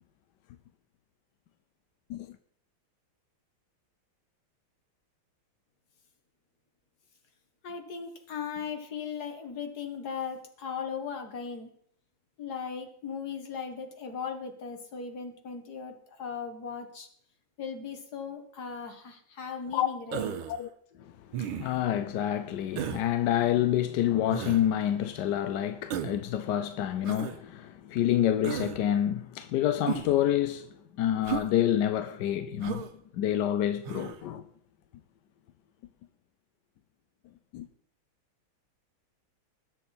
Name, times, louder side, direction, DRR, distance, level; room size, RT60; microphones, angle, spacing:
voice 1, 7.6-11.7 12.4-17.1 17.6-20.4, left 6 dB, 50° left, 2.0 m, -38 dB
Human voice, 20.1-20.6 21.3-21.8 22.8-23.1 24.3-24.6 25.9-26.2 27.0-27.4 28.4-28.8 29.9-30.2 31.2-31.5 32.6-32.9 33.8-34.2, right 9 dB, 85° right, 1.7 m, -34 dB
voice 2, 21.4-30.7 31.0-32.8 33.2-34.4 37.5-37.7, left 11 dB, 70° left, 1.1 m, -28 dB
20.0 x 7.6 x 4.2 m
omnidirectional pair, 2.3 m